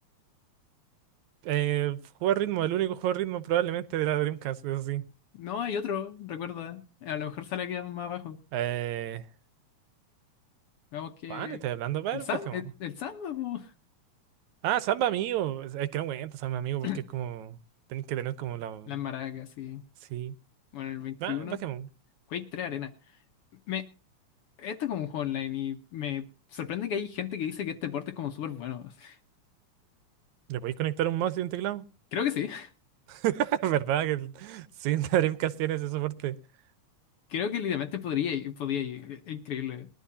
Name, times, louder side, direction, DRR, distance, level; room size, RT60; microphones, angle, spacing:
voice 1, 1.4-5.0 8.5-9.3 11.3-12.6 14.6-16.9 17.1-17.6 17.9-19.0 20.1-20.3 21.2-21.9 30.5-31.9 33.1-36.4, right 12 dB, 80° right, 2.2 m, -29 dB
voice 2, 5.3-8.4 10.9-11.6 12.1-13.7 16.8-17.1 18.9-19.8 20.7-21.6 22.3-22.9 23.7-23.9 24.6-26.2 26.5-29.2 32.1-32.7 37.3-39.9, left 9 dB, 65° left, 1.6 m, -33 dB
21.5 x 12.0 x 2.7 m
omnidirectional pair, 3.3 m